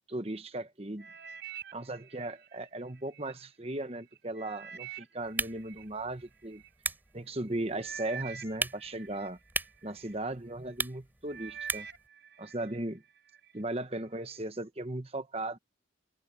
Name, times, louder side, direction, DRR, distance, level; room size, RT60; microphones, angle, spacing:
voice 1, 0.1-1.1 1.7-6.6 7.1-9.4 9.8-11.9 12.4-13.0 13.5-15.6, right 2 dB, 30° right, 1.1 m, -37 dB
sound 1, 1.0-3.3 3.8-6.7 7.4-7.5 7.8-10.2 10.7-11.0 11.3-12.8 13.2-13.6 14.2-14.3, right 8 dB, 55° right, 5.1 m, -46 dB
sound 2, 5.2-12.1, right 2 dB, 10° right, 4.8 m, -39 dB
head